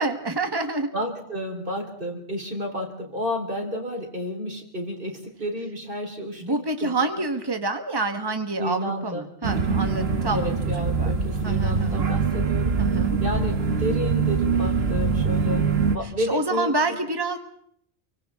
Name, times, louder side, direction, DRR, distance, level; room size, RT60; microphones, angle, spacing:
voice 1, 0.0-0.9 6.4-10.5 11.0-11.1 11.4-12.0 12.8-13.2 16.2-17.4, right 3 dB, 25° right, 6 dB, 1.6 m, -27 dB
voice 2, 0.9-7.2 8.6-9.2 10.3-12.8 13.2-17.0, left 1 dB, 60° right, 2 dB, 4.2 m, -31 dB
sound 1, 9.4-16.0, right 5 dB, 75° right, 1.7 m, -23 dB
29.5 x 24.5 x 3.7 m, 0.66 s
omnidirectional pair, 1.0 m